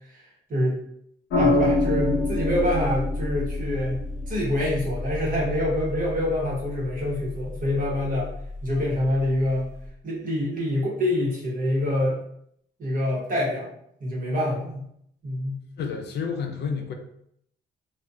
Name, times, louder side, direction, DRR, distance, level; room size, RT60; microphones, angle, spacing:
sound 1, 1.3-9.9, left 2 dB, 75° left, 0.9 m, -28 dB
voice 1, 1.3-8.3 8.6-9.7 10.0-12.2 12.8-13.7 14.0-14.8 15.2-15.6, left 1 dB, 45° right, -4 dB, 1.1 m, -26 dB
voice 2, 15.8-16.9, left 6 dB, 60° left, 4 dB, 0.5 m, -30 dB
2.7 x 2.4 x 2.4 m, 0.71 s
cardioid pair, 90°, 20 cm